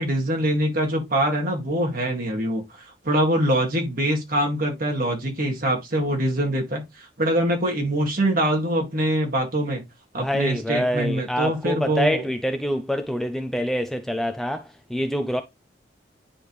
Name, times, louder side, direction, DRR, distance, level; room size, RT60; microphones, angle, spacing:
voice 1, 0.0-9.8 10.1-12.2, right 1 dB, 50° right, 2.1 m, -24 dB
voice 2, 10.2-15.4, equal, ahead, 0.4 m, -26 dB
9.9 x 3.4 x 3.1 m
head